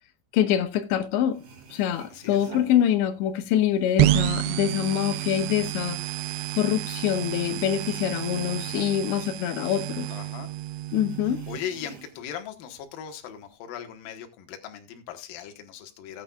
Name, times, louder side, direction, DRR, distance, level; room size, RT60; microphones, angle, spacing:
voice 1, 0.3-1.4 1.7-6.0 6.6-10.1 10.9-11.4, left 10 dB, 90° left, 3.3 m, -25 dB
sound 1, 1.0-1.1 1.3-3.5 3.8-6.8 7.0-10.0 10.3-10.4 10.9-12.4 12.7-13.5, right 5 dB, 60° right, 3.1 m, -48 dB
voice 2, 2.1-2.5 10.1-10.5 11.3-16.2, left 9 dB, 65° left, 2.8 m, -39 dB
sound 2, 4.0-11.6, right 15 dB, 80° right, 2.4 m, -29 dB
18.5 x 8.5 x 2.4 m
omnidirectional pair, 5.0 m